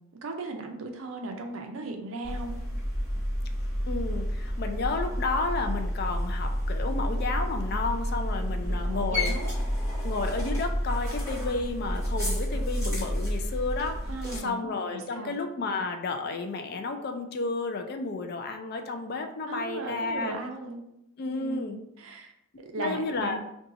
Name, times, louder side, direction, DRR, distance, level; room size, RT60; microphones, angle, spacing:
voice 1, 0.2-2.5 8.4-9.5 14.1-14.6 14.9-15.3 19.5-20.8 21.4-23.4, right 2 dB, 65° right, 4 dB, 0.5 m, -37 dB
sound 1, 2.2-14.4, equal, 10° left, 1.1 m, -30 dB
voice 2, 3.9-9.4 10.0-14.0 14.4-20.4 21.2-21.8 22.8-23.4, left 3 dB, 45° left, 6 dB, 0.3 m, -32 dB
2.7 x 2.3 x 3.8 m, 0.82 s
head